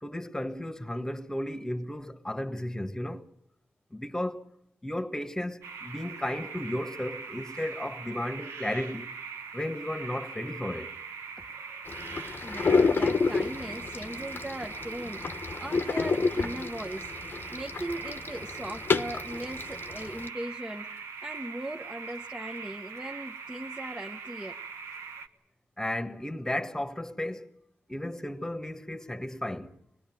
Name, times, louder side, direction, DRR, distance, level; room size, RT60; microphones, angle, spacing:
voice 1, 0.0-3.2 3.9-4.5 4.8-9.1 9.5-11.0 25.8-27.5 27.9-29.8, left 1 dB, 10° left, 1.6 m, -34 dB
sound 1, 5.6-25.3, right 5 dB, 85° right, 1.4 m, -41 dB
sound 2, 11.9-20.3, left 4 dB, 50° left, 1.1 m, -30 dB
voice 2, 12.4-17.1 17.5-24.6, right 1 dB, 15° right, 1.1 m, -39 dB
25.0 x 19.5 x 9.1 m
cardioid pair, 60°, 5 cm